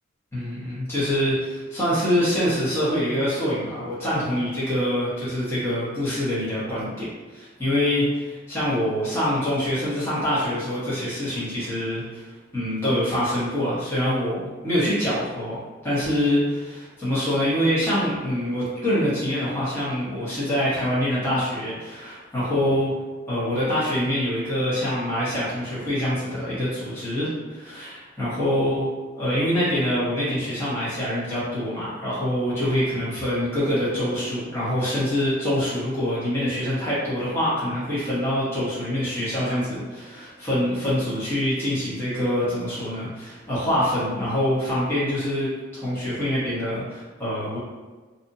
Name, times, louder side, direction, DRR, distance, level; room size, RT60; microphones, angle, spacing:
voice 1, 0.3-7.1 7.3-12.2 12.5-15.6 15.8-22.9 23.3-28.9 29.2-47.6, equal, 15° left, -11 dB, 1.0 m, -25 dB
2.8 x 2.5 x 2.6 m, 1.3 s
head